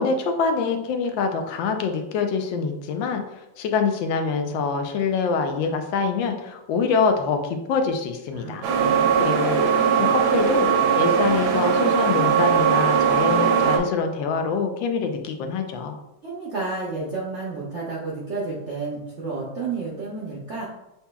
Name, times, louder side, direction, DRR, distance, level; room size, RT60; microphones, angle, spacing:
voice 1, 0.0-3.2 3.6-8.6 9.2-9.7 10.0-15.9, left 5 dB, 80° left, 5 dB, 1.3 m, -25 dB
voice 2, 8.3-9.4 16.2-20.7, right 3 dB, 65° right, -4 dB, 0.7 m, -31 dB
sound 1, 8.6-13.8, right 7 dB, 85° right, 1.4 m, -20 dB
6.9 x 2.8 x 2.3 m, 0.92 s
omnidirectional pair, 2.1 m